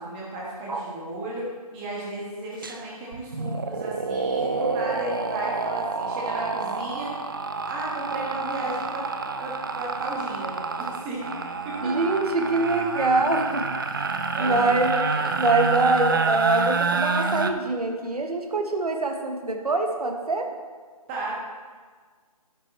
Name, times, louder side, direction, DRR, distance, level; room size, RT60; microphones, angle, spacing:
voice 1, 0.0-1.5 1.7-7.1 7.7-9.1 9.4-11.3 11.6-11.9 14.3-15.4 21.1-21.3, right 1 dB, 15° right, -4 dB, 1.5 m, -34 dB
sound 1, 2.6-2.8 3.1-17.5, right 4 dB, 35° right, 0.4 m, -28 dB
voice 2, 11.8-13.6 14.4-14.9 15.4-20.5, right 3 dB, 75° right, 5 dB, 1.4 m, -24 dB
11.0 x 6.1 x 4.4 m, 1.5 s
hypercardioid pair, 165°, 20 cm